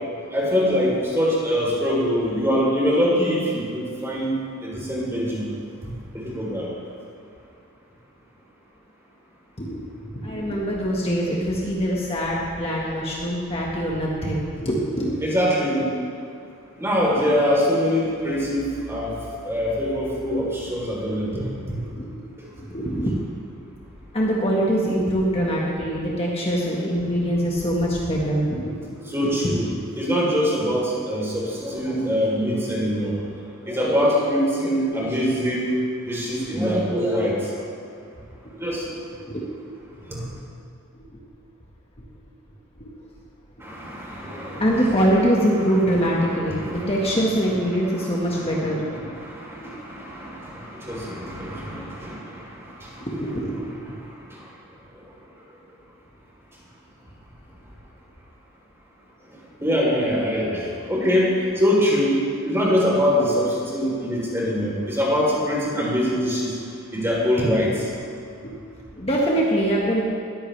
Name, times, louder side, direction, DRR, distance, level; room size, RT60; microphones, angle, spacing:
voice 1, 0.3-4.3 4.6-5.4 6.1-6.7 15.2-15.9 16.8-19.2 19.4-21.8 22.4-22.5 29.1-29.7 30.0-33.2 33.6-35.7 36.0-37.5 38.6-38.9 40.1-40.3 43.6-44.8 46.5-46.9 47.9-48.1 48.3-48.4 49.1-53.1 54.3-54.5 59.6-62.2 62.4-66.5 66.9-67.9, equal, 15° right, -5 dB, 3.7 m, -23 dB
voice 2, 9.6-15.1 21.9-22.3 22.6-23.1 24.1-28.7 29.2-29.3 39.2-39.5 40.2-40.3 40.9-41.0 42.8-42.9 44.6-49.2 49.5-49.7 53.0-53.9 68.4-68.5 68.9-70.0, equal, 30° left, -4 dB, 1.6 m, -24 dB
20.5 x 14.0 x 3.4 m, 2.4 s
head